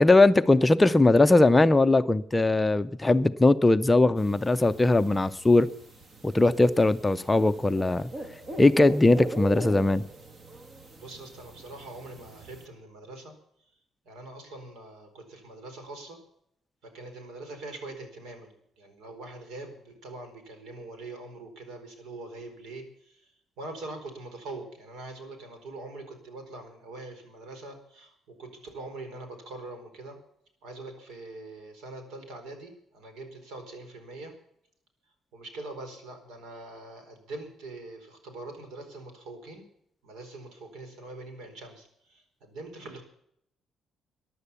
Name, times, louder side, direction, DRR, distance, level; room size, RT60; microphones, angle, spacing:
voice 1, 0.0-5.7 6.2-8.1 8.6-10.0, left 2 dB, 15° left, 11 dB, 0.5 m, -20 dB
sound 1, 4.2-12.7, right 1 dB, 35° right, 1.6 m, -41 dB
voice 2, 11.0-13.3 14.1-16.2 16.9-18.5 18.8-23.2 23.6-30.2 30.6-34.3 35.3-39.6 40.0-43.0, right 2 dB, 85° right, 6 dB, 4.4 m, -43 dB
15.0 x 11.0 x 7.0 m, 0.71 s
cardioid pair, 140°, 0 cm